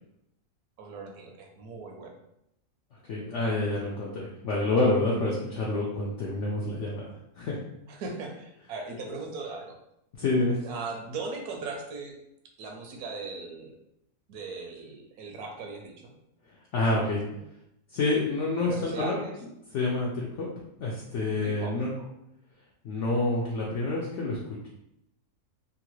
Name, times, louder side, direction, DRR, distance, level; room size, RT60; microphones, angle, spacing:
voice 1, 0.8-2.2 7.9-9.8 10.6-12.2 12.6-13.7 14.3-16.1 16.8-17.4 18.6-19.3 21.4-21.9, right 4 dB, 80° right, 2 dB, 1.1 m, -39 dB
voice 2, 3.1-7.0 7.4-7.6 10.2-10.6 16.7-17.2 17.9-19.1 19.7-20.5 20.8-21.9 22.8-24.7, left 2 dB, 65° left, -4 dB, 0.8 m, -28 dB
3.0 x 2.4 x 3.0 m, 0.82 s
omnidirectional pair, 1.6 m